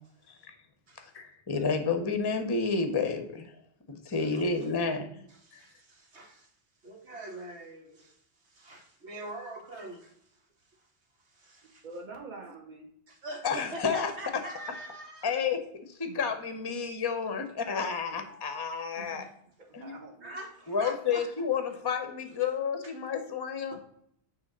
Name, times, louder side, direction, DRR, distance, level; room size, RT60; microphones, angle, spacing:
voice 1, 1.0-3.5 3.9-5.3 13.4-14.1 15.2-19.3 19.7-19.9 20.7-23.8, left 5 dB, 25° left, 7 dB, 0.6 m, -31 dB
voice 2, 4.1-4.4 5.3-6.5 6.8-10.2 10.7-10.9 11.2-11.9 13.1-15.3 17.6-17.8 18.2-18.9 20.2-21.3 22.8-22.9 23.7-23.8, right 1 dB, 85° right, 1 dB, 1.7 m, -44 dB
voice 3, 11.8-12.9 16.1-16.2 18.1-18.2 19.0-19.3 19.7-20.4, right 3 dB, 45° right, 0 dB, 1.4 m, -45 dB
6.2 x 3.0 x 5.2 m, 0.70 s
omnidirectional pair, 1.1 m